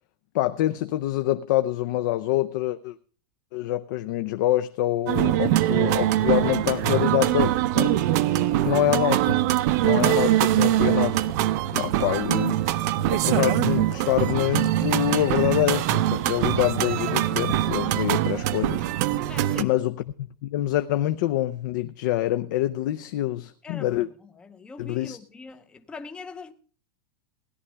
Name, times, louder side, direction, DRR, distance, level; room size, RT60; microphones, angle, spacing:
voice 1, 0.3-3.0 3.5-8.1 8.6-9.4 9.8-11.3 11.7-12.8 13.1-18.9 19.6-20.0 20.4-24.1 24.8-25.2, left 14 dB, 55° left, 0.6 m, -26 dB
sound 1, 5.1-19.6, right 13 dB, 45° right, 0.6 m, -23 dB
voice 2, 19.3-19.8 23.6-24.1 24.4-26.5, left 4 dB, 10° left, 0.6 m, -42 dB
17.0 x 11.0 x 3.4 m
supercardioid pair, 170°, 12 cm